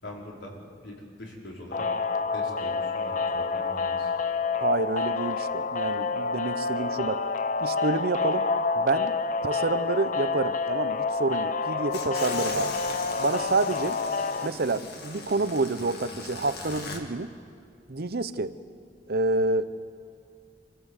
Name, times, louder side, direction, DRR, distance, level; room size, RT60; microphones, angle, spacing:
voice 1, 0.0-1.9 2.3-4.1, left 1 dB, 80° left, -2 dB, 4.7 m, -43 dB
sound 1, 1.7-14.5, left 4 dB, 45° left, 0.6 m, -28 dB
voice 2, 4.6-7.2 7.6-8.5 8.8-9.1 9.4-12.7 13.2-14.0 14.4-17.3 17.9-18.5 19.1-19.7, right 3 dB, 60° right, 13 dB, 0.8 m, -28 dB
sound 2, 11.9-17.0, left 3 dB, 60° left, 2.3 m, -39 dB
26.0 x 15.5 x 8.1 m, 2.2 s
head